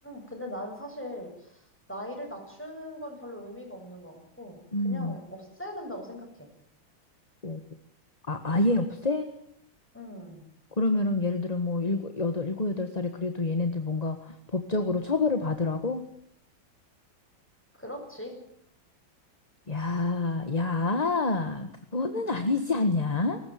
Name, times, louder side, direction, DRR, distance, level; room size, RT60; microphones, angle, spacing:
voice 1, 0.0-6.5 9.9-10.4 17.7-18.4 21.2-21.5, left 1 dB, 5° left, 2 dB, 7.8 m, -40 dB
voice 2, 4.7-5.2 7.4-7.6 8.3-9.3 10.8-16.0 19.7-23.4, left 3 dB, 20° left, 8 dB, 1.5 m, -27 dB
22.0 x 19.0 x 9.6 m, 0.67 s
omnidirectional pair, 2.2 m